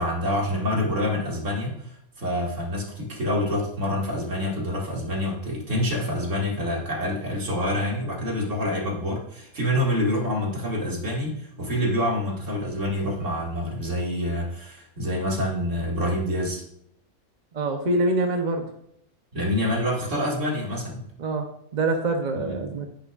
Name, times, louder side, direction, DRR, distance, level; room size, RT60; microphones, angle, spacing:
voice 1, 0.0-16.6 19.3-21.1 22.3-22.5, left 1 dB, 60° right, -2 dB, 2.5 m, -27 dB
voice 2, 17.5-18.7 21.2-21.5 21.7-22.9, right 2 dB, 40° right, 4 dB, 0.8 m, -25 dB
9.9 x 9.7 x 2.4 m, 0.73 s
omnidirectional pair, 1.5 m